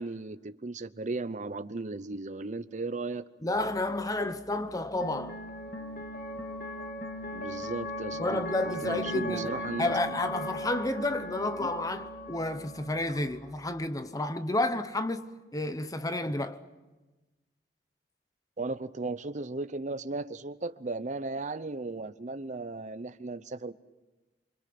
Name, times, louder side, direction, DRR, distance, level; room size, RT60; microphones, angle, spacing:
voice 1, 0.0-3.3 7.3-9.9 11.6-11.7 18.6-23.7, right 3 dB, 45° right, 0.8 m, -36 dB
voice 2, 3.4-5.4 8.2-16.6, left 2 dB, 20° left, 1.0 m, -31 dB
sound 1, 3.5-13.9, left 1 dB, 60° left, 2.1 m, -39 dB
28.0 x 25.0 x 6.0 m
head